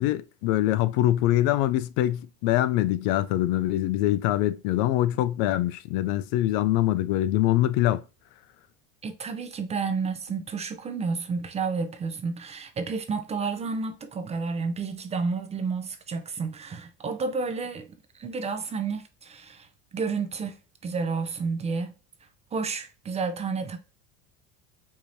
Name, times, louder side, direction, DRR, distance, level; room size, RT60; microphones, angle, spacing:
voice 1, 0.0-8.0, left 14 dB, 65° left, 0.5 m, -24 dB
voice 2, 9.0-17.9 18.1-19.7 19.9-20.6 20.8-21.9 22.5-23.8, right 4 dB, 20° right, 0.4 m, -30 dB
4.7 x 2.8 x 2.6 m
cardioid pair, 145°, 33 cm